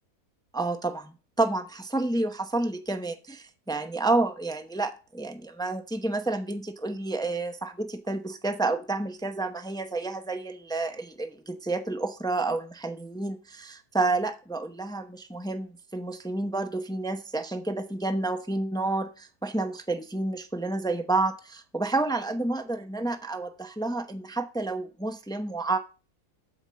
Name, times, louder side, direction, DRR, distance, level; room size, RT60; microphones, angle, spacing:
voice 1, 0.5-3.4 3.7-25.8, right 2 dB, 5° left, 7 dB, 0.5 m, -30 dB
8.9 x 7.2 x 5.1 m, 0.33 s
omnidirectional pair, 1.7 m